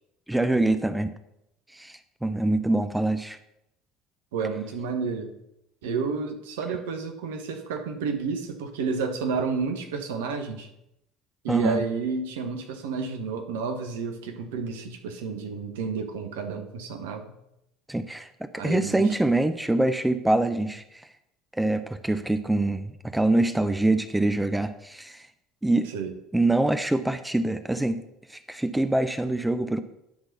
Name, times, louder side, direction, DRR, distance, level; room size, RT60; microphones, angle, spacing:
voice 1, 0.3-1.1 1.7-3.4 11.5-11.8 17.9-18.3 18.6-21.1 21.5-25.2 25.6-25.9 26.3-28.0 28.3-29.8, right 2 dB, 5° right, 10 dB, 0.6 m, -24 dB
voice 2, 4.3-5.3 5.8-10.7 11.4-17.4 18.6-19.3 25.9-26.1, right 5 dB, 70° right, 6 dB, 1.2 m, -31 dB
10.0 x 4.0 x 6.7 m, 0.83 s
figure-of-eight pair, 65°, 0 cm